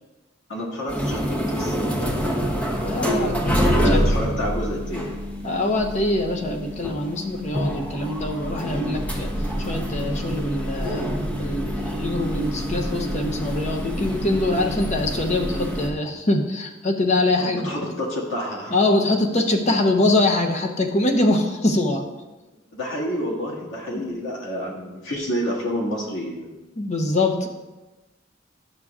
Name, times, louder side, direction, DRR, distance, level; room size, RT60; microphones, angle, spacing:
voice 1, 0.5-1.8 3.8-5.1 17.4-18.8 22.7-26.6, equal, 90° left, -3 dB, 1.8 m, -28 dB
sound 1, 0.9-15.9, equal, 5° left, 0.8 m, -26 dB
voice 2, 2.8-4.0 5.4-9.3 9.6-11.1 11.4-17.7 18.7-22.0 23.9-24.1 26.8-27.5, left 2 dB, 35° left, 3 dB, 0.7 m, -23 dB
11.0 x 6.6 x 2.4 m, 1.1 s
head